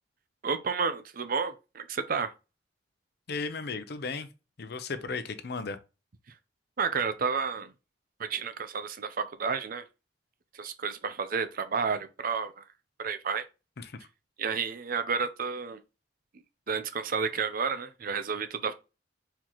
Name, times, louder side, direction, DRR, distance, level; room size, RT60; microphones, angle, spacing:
voice 1, 0.4-2.3 6.8-7.7 8.2-9.8 10.5-12.6 13.0-13.4 14.4-15.8 16.7-18.7, right 5 dB, 50° right, 0.5 m, -31 dB
voice 2, 3.3-4.3 4.6-5.8 13.8-14.0, left 4 dB, 60° left, 0.6 m, -35 dB
4.4 x 3.9 x 3.0 m
head